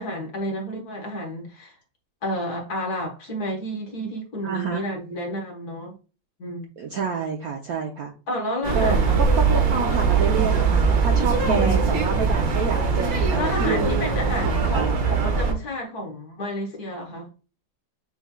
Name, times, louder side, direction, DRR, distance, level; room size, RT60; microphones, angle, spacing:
voice 1, 0.0-1.7 2.2-5.9 6.4-6.7 8.3-9.2 11.4-11.8 13.3-17.3, equal, 50° left, 1.6 m, -30 dB
voice 2, 4.4-4.8 6.8-8.1 8.7-14.9, right 5 dB, 65° right, 0.9 m, -28 dB
sound 1, 8.6-15.5, right 5 dB, 90° right, 2.1 m, -21 dB
7.0 x 3.2 x 2.2 m
omnidirectional pair, 2.2 m